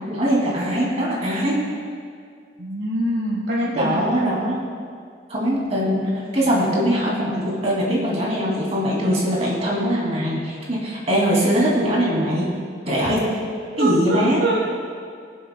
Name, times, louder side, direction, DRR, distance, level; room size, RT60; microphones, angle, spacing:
voice 1, 0.1-1.6 3.7-4.6 5.3-12.5 12.9-13.2 13.8-14.4, equal, 35° right, -4 dB, 2.5 m, -21 dB
voice 2, 2.6-4.0 13.7-14.7, right 1 dB, 70° right, -4 dB, 1.4 m, -24 dB
22.0 x 7.7 x 2.2 m, 2.2 s
head